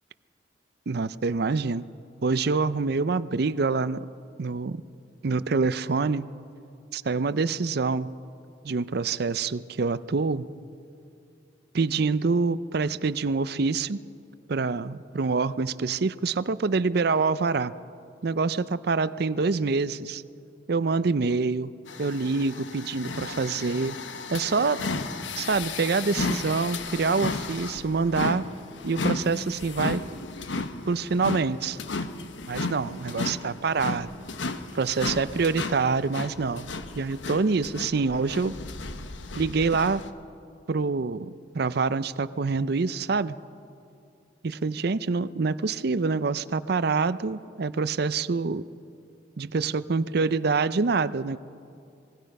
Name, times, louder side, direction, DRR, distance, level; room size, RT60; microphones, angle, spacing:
voice 1, 0.9-1.8 2.2-4.1 4.4-4.8 5.2-6.3 6.9-8.1 8.6-10.5 11.7-14.0 14.5-17.7 18.2-20.2 20.7-21.7 22.0-24.0 24.3-24.8 25.4-28.5 28.8-30.0 30.9-31.8 32.5-34.1 34.7-36.7 37.0-38.5 39.4-40.0 40.7-43.4 44.4-48.6 49.4-51.4, right 4 dB, 60° right, 15 dB, 0.5 m, -26 dB
sound 1, 21.9-40.1, left 3 dB, 80° left, 1.0 m, -34 dB
26.0 x 19.5 x 5.4 m, 2.6 s
head